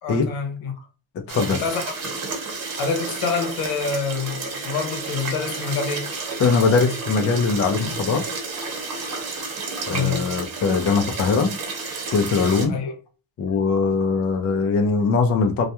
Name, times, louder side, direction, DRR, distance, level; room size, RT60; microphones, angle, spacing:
voice 1, 0.0-0.9 1.3-2.0 2.8-6.1 9.9-10.3 12.7-13.0, left 5 dB, 80° left, 0.8 m, -27 dB
voice 2, 1.3-1.6 6.4-8.3 9.9-11.5 12.1-12.7 13.4-15.7, left 4 dB, 35° left, 0.4 m, -21 dB
sound 1, 1.3-12.7, right 3 dB, 45° right, 1.1 m, -31 dB
2.3 x 2.1 x 2.8 m
cardioid pair, 115°, 47 cm